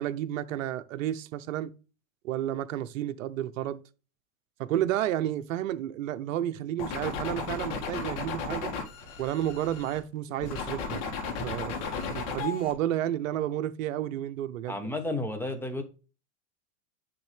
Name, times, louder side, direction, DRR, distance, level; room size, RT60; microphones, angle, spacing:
voice 1, 0.0-1.7 2.2-3.8 4.6-8.7 9.2-11.0 11.4-11.7 12.1-14.8, right 12 dB, 75° right, 0.8 m, -31 dB
sound 1, 6.8-10.0 10.4-12.7, left 5 dB, 55° left, 2.1 m, -34 dB
voice 2, 14.7-15.8, left 2 dB, 5° left, 1.0 m, -32 dB
9.6 x 3.5 x 3.3 m
hypercardioid pair, 125°, 40 cm